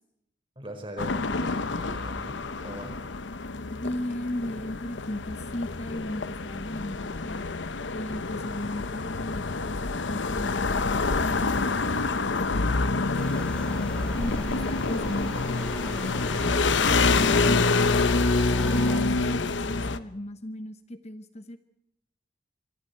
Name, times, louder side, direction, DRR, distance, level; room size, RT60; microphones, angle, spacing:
voice 1, 0.5-3.0, right 1 dB, 30° right, 4 dB, 4.8 m, -41 dB
sound 1, 1.0-20.0, left 3 dB, 80° left, 0.9 m, -27 dB
voice 2, 3.7-7.6 7.9-13.5 14.2-18.0 18.6-21.6, left 1 dB, 35° left, 10 dB, 1.0 m, -36 dB
sound 2, 13.1-19.0, left 1 dB, 5° left, 3.7 m, -36 dB
25.5 x 24.0 x 4.5 m, 0.83 s
head